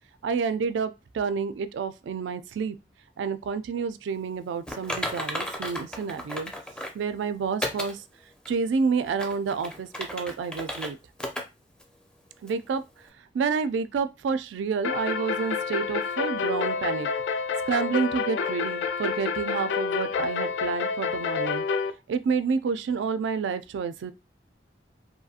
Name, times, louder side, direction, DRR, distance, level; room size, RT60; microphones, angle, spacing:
voice 1, 0.2-2.8 3.2-6.5 6.9-8.0 8.5-11.0 12.4-12.8 13.3-17.1 17.7-21.6 22.1-24.1, right 5 dB, 90° right, 0.3 m, -29 dB
Typing, 4.7-7.0 7.6-7.9 8.4-8.5 9.1-10.9 11.2-11.4 11.8-11.9 12.5-12.6, equal, 5° left, 0.4 m, -34 dB
sound 1, 14.8-21.9, left 5 dB, 75° left, 0.3 m, -28 dB
2.6 x 2.4 x 2.7 m
head